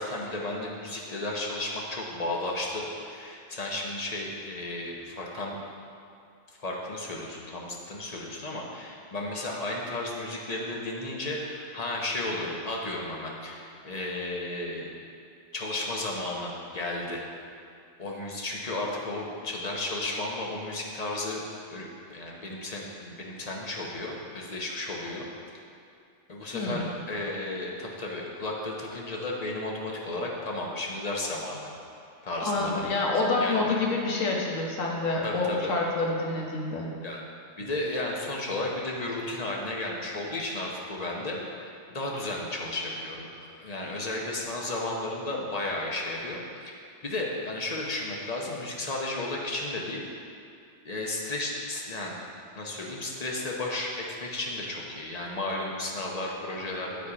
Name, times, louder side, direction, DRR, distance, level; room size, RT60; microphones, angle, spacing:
voice 1, 0.0-5.6 6.6-14.9 15.5-17.3 18.0-21.4 21.7-25.3 26.3-31.7 32.2-33.0 33.3-33.9 35.2-35.8 37.0-37.2 37.6-46.7 47.0-50.3 50.8-52.2 52.5-57.1, left 2 dB, 35° left, -2 dB, 0.9 m, -33 dB
voice 2, 26.5-26.9 32.5-36.9, left 3 dB, 85° left, -2 dB, 1.4 m, -27 dB
8.3 x 4.2 x 4.9 m, 2.5 s
omnidirectional pair, 1.3 m